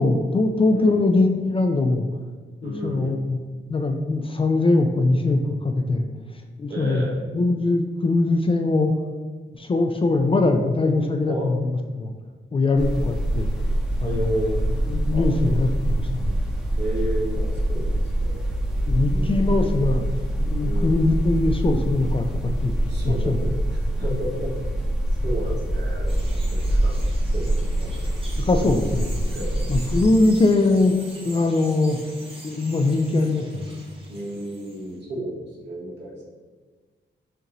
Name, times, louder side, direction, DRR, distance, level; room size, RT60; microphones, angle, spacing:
voice 1, 0.0-2.1 2.6-3.4 3.7-6.1 6.6-8.9 9.6-12.1 12.5-13.5 14.0-14.2 14.9-16.4 18.9-20.0 20.5-22.7 23.0-23.3 28.5-29.1 29.7-31.0 31.2-32.0 32.4-33.7, left 2 dB, 30° left, 4 dB, 0.3 m, -21 dB
voice 2, 0.7-1.1 2.6-3.2 6.7-7.2 11.3-11.5 14.0-14.7 15.1-15.6 16.8-19.6 20.6-21.1 22.9-24.5 25.2-26.9 27.3-28.1 28.6-28.7 29.3-29.7 34.1-36.2, right 1 dB, 60° right, -4 dB, 1.4 m, -32 dB
sound 1, 12.8-30.0, right 1 dB, 5° right, 0.7 m, -25 dB
Bird vocalization bird call bird song, 26.1-35.0, right 1 dB, 30° right, 0.9 m, -43 dB
6.5 x 3.0 x 2.6 m, 1.4 s
cardioid pair, 100°, 19 cm